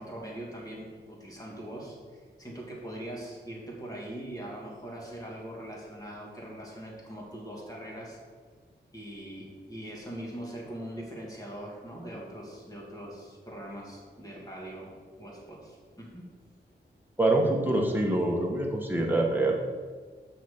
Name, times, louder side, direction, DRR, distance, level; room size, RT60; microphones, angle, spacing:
voice 1, 0.0-8.2 8.9-16.2, right 1 dB, 20° left, -3 dB, 2.5 m, -42 dB
voice 2, 17.2-19.5, right 2 dB, 10° right, -1 dB, 1.4 m, -25 dB
6.1 x 5.9 x 7.2 m, 1.5 s
wide cardioid pair, 125°, 18 cm